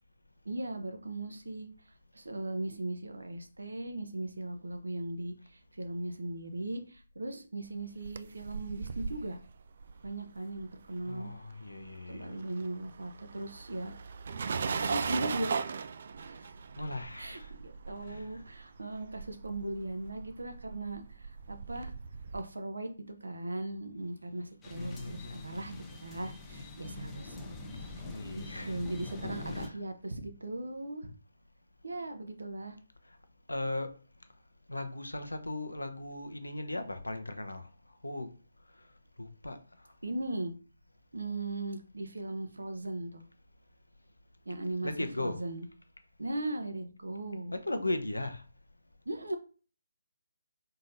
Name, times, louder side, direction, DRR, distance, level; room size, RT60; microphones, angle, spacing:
voice 1, 0.4-1.7 2.1-9.4 10.0-11.3 12.1-13.9 14.8-15.6 16.2-16.6 17.2-21.9 22.3-22.9 23.2-27.4 27.8-28.0 28.4-31.1 31.8-32.8 40.0-40.5 41.1-43.2 44.5-44.9 45.2-45.7 46.2-47.6 49.1-49.4, right 1 dB, 80° right, 0.9 m, -38 dB
sound 1, 7.8-11.4 11.7-22.4, right 5 dB, 50° right, 0.3 m, -39 dB
voice 2, 11.1-12.4 16.7-17.5 18.0-18.4 24.7-25.6 28.1-28.8 29.5-29.8 33.5-33.9 34.7-37.7 38.0-38.3 38.8-38.9 39.2-39.6 44.8-45.4 47.5-48.4, left 2 dB, 90° left, 0.7 m, -37 dB
sound 2, 24.6-29.7, left 2 dB, 15° left, 0.8 m, -43 dB
4.1 x 3.9 x 2.7 m
figure-of-eight pair, 145°, 0 cm